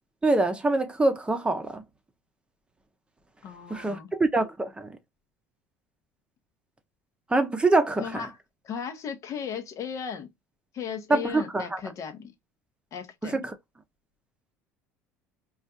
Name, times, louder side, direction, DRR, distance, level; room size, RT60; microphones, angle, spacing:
voice 1, 0.2-1.8 3.7-5.0 7.3-8.3 11.1-11.8 13.2-13.5, right 2 dB, 15° right, 0.7 m, -25 dB
voice 2, 3.4-4.1 8.0-8.4 8.6-10.3 10.7-12.3 12.9-13.5, left 7 dB, 45° left, 0.8 m, -36 dB
4.4 x 2.4 x 2.5 m
hypercardioid pair, 65°, 7 cm